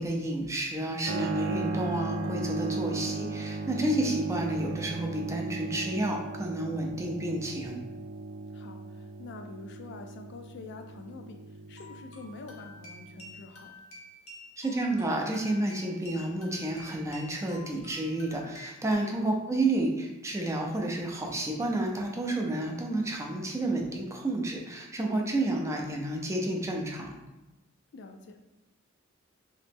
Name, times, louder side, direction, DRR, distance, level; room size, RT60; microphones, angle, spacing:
voice 1, 0.0-7.8 14.6-27.1, right 1 dB, 15° right, 1 dB, 0.4 m, -30 dB
Keyboard (musical), 1.0-13.5, right 3 dB, 80° right, 0.4 m, -36 dB
voice 2, 2.9-3.2 8.5-13.8 19.2-19.4 27.9-28.4, left 3 dB, 55° left, 5 dB, 0.3 m, -46 dB
sound 1, 11.8-18.9, left 1 dB, 80° left, 0.8 m, -50 dB
3.0 x 2.9 x 3.4 m, 1.0 s
head